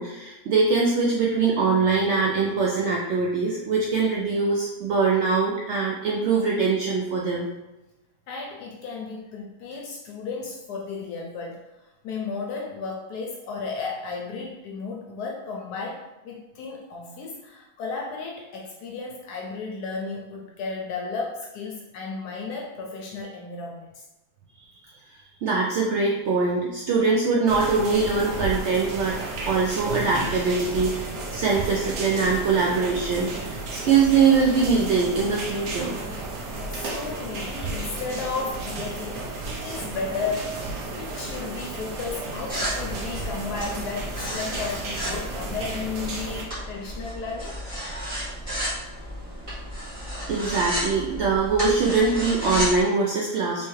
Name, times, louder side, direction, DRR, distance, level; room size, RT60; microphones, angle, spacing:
voice 1, 0.0-7.5 25.4-29.2 29.4-36.0 50.3-53.7, right 4 dB, 85° right, -3 dB, 0.6 m, -23 dB
voice 2, 8.3-11.6 12.0-24.0 36.7-40.5 40.9-47.6, left 4 dB, 75° left, -1 dB, 1.1 m, -34 dB
sound 1, 27.5-46.4, right 2 dB, 70° right, 1.1 m, -33 dB
sound 2, 42.5-52.8, equal, 20° right, 1.5 m, -33 dB
3.4 x 3.2 x 3.1 m, 1.0 s
omnidirectional pair, 1.7 m